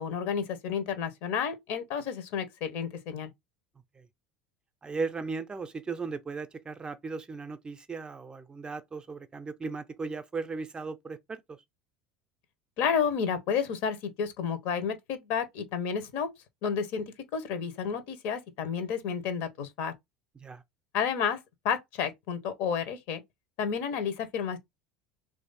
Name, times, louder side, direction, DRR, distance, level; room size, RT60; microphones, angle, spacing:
voice 1, 0.0-3.3 12.8-16.3 16.6-17.1 17.3-19.9 20.9-21.4 21.6-23.2 23.6-24.6, left 7 dB, 60° left, 0.8 m, -31 dB
voice 2, 4.8-11.6 20.4-20.6, right 4 dB, 20° right, 0.5 m, -37 dB
3.2 x 2.6 x 3.9 m
hypercardioid pair, 75°, 4 cm